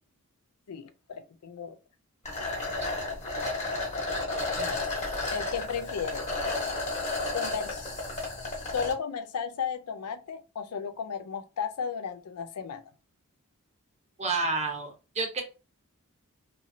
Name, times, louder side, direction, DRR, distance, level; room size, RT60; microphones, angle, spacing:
voice 1, 0.7-1.8 4.6-4.8 5.3-6.3 7.3-8.0 8.7-12.8, left 6 dB, 90° left, 0.5 m, -34 dB
sound 1, 2.3-8.9, left 2 dB, 30° left, 1.1 m, -32 dB
voice 2, 14.2-14.9 15.1-15.4, right 3 dB, 30° right, 0.8 m, -28 dB
2.8 x 2.6 x 2.6 m
head